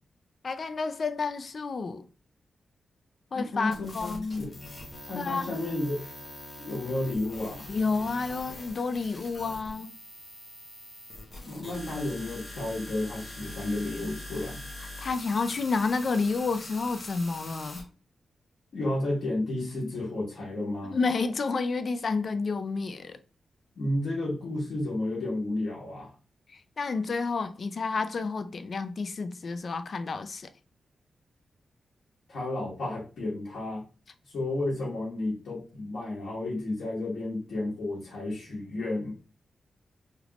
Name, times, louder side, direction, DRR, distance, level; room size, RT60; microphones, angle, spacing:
voice 1, 0.4-2.1 3.3-4.6 5.1-5.6 7.7-9.9 15.0-17.8 20.9-23.2 26.5-30.5, left 4 dB, 45° left, 0.3 m, -30 dB
voice 2, 3.3-4.1 4.4-4.5 5.1-6.1 6.6-7.6 11.4-14.6 18.7-21.0 23.7-26.1 32.3-33.9 34.2-39.1, left 2 dB, 80° left, 1.3 m, -32 dB
sound 1, 3.7-17.8, left 1 dB, 30° left, 1.0 m, -43 dB
3.4 x 3.0 x 2.4 m
wide cardioid pair, 150°, 0 cm